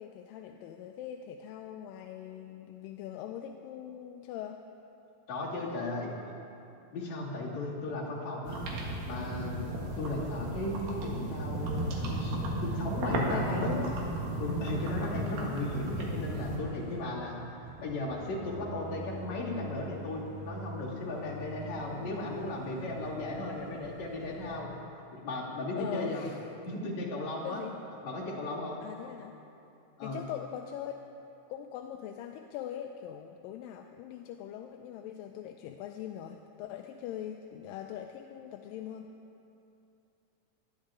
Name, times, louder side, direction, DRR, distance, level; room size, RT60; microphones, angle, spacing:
voice 1, 0.0-4.6 13.3-13.9 25.8-26.4 27.4-27.8 28.8-29.3 30.0-30.9 31.5-39.1, left 10 dB, 85° left, 5 dB, 2.2 m, -41 dB
voice 2, 5.3-6.1 6.9-9.7 10.0-13.9 14.4-17.4 17.8-24.7 25.1-26.3 26.7-27.6 28.0-28.8 30.0-30.2, left 2 dB, 50° left, -6 dB, 3.9 m, -36 dB
sound 1, 8.4-16.6, right 1 dB, 85° right, 3.5 m, -35 dB
sound 2, 11.4-24.6, right 1 dB, 65° right, 2.8 m, -45 dB
20.0 x 12.5 x 3.8 m, 2.7 s
omnidirectional pair, 4.1 m